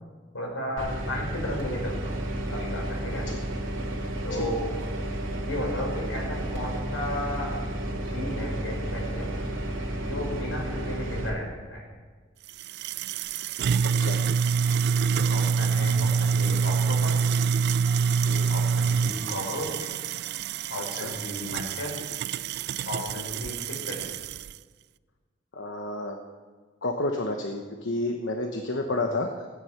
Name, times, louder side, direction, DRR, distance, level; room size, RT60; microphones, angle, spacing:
voice 1, 0.3-2.2 2.5-3.3 4.2-4.6 5.3-7.5 7.9-9.3 10.0-11.8 15.1-17.1 18.5-19.9 20.7-21.9 22.8-24.1, left 1 dB, 85° left, -1 dB, 5.0 m, -34 dB
sound 1, 0.8-11.3, right 1 dB, 80° right, 2.9 m, -32 dB
sound 2, 12.5-24.5, right 6 dB, 55° right, 0.3 m, -26 dB
voice 2, 20.8-21.1 23.3-23.4 25.5-26.2 26.8-29.5, left 2 dB, 65° left, 4 dB, 1.1 m, -31 dB
16.5 x 9.8 x 5.8 m, 1.4 s
head